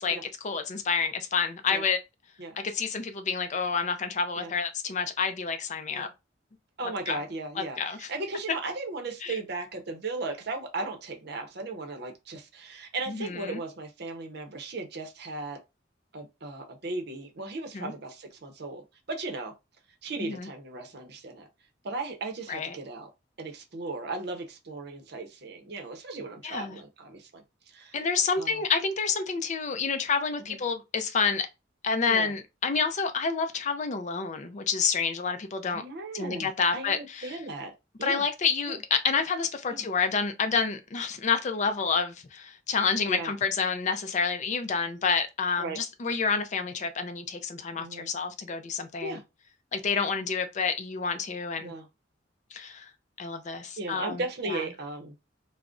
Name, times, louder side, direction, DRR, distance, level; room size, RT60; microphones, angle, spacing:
voice 1, 0.0-2.0 2.6-6.1 7.1-7.2 7.6-8.1 9.2-9.4 13.1-13.6 17.7-17.9 20.2-20.5 22.5-22.8 26.4-26.8 27.9-31.5 31.8-35.8 36.1-37.3 38.0-49.2 49.7-51.7 52.5-52.9 53.2-54.2 54.5-54.6, left 5 dB, 40° left, 0.4 m, -29 dB
voice 2, 6.8-15.6 16.1-19.5 20.0-21.5 21.8-23.1 23.4-27.4 27.7-28.0 28.3-28.6 30.4-30.6 32.1-32.3 35.7-37.7 38.0-38.3 38.7-38.8 39.7-39.8 43.1-43.3 45.6-45.8 47.8-48.1 49.0-49.2 51.6-51.9 53.8-55.1, right 3 dB, 55° right, 0.6 m, -36 dB
2.4 x 2.0 x 3.6 m
head